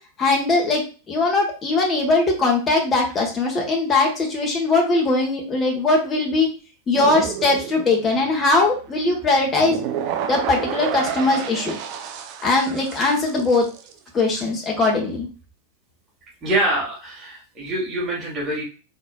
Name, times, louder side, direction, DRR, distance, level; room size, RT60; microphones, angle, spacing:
voice 1, 0.2-6.5 6.9-11.8 12.4-13.7 14.1-15.3, left 3 dB, 20° left, 0 dB, 1.3 m, -20 dB
sound 1, 6.9-13.9, right 8 dB, 45° right, 0.6 m, -30 dB
voice 2, 16.4-18.6, right 1 dB, 25° right, -5 dB, 2.4 m, -25 dB
4.4 x 4.4 x 2.3 m, 0.34 s
figure-of-eight pair, 90°, 0 cm